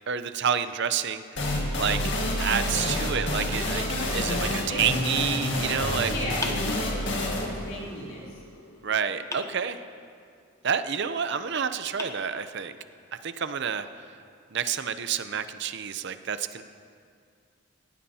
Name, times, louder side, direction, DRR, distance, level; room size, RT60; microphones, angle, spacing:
voice 1, 0.1-1.2 1.8-2.0 2.4-3.8 4.1-6.1 8.8-9.8 10.6-12.7 13.2-13.9 14.5-16.6, right 7 dB, 55° right, 11 dB, 0.6 m, -28 dB
sound 1, 1.4-8.8, left 1 dB, 60° left, 1.8 m, -28 dB
voice 2, 6.1-8.4, left 1 dB, 75° left, -6 dB, 3.2 m, -36 dB
sound 2, 6.4-7.4 9.3-10.2 11.4-11.5 12.0-13.0, left 2 dB, 15° left, 0.9 m, -41 dB
18.5 x 16.0 x 2.8 m, 2.3 s
head